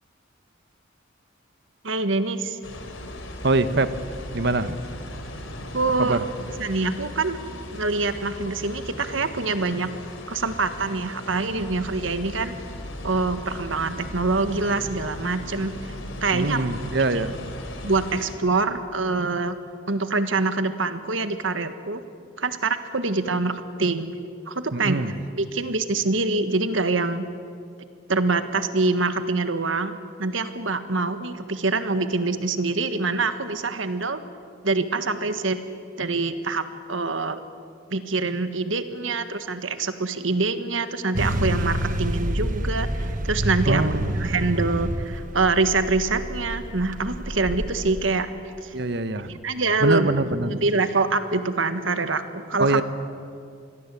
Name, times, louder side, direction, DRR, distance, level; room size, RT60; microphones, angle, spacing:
voice 1, 1.8-2.6 5.7-6.2 6.6-7.4 7.7-9.9 10.3-12.5 13.0-15.7 16.2-16.6 17.8-19.6 19.9-22.0 22.4-24.1 24.5-25.0 25.4-27.2 28.1-34.2 34.6-35.6 36.0-37.4 37.9-43.9 44.2-48.3 48.6-48.7 49.4-50.1 50.4-52.8, right 3 dB, 75° right, 10 dB, 1.6 m, -25 dB
sound 1, 2.6-18.3, left 1 dB, 85° left, 3.5 m, -37 dB
voice 2, 3.4-3.9 4.3-4.8 6.0-6.3 16.3-17.3 24.7-25.1 43.7-44.1 48.7-49.4 49.8-50.5 52.6-52.8, right 2 dB, 60° right, 12 dB, 1.1 m, -23 dB
sound 2, 41.2-48.1, right 1 dB, 40° right, 1.4 m, -28 dB
27.0 x 21.0 x 8.4 m, 2.3 s
head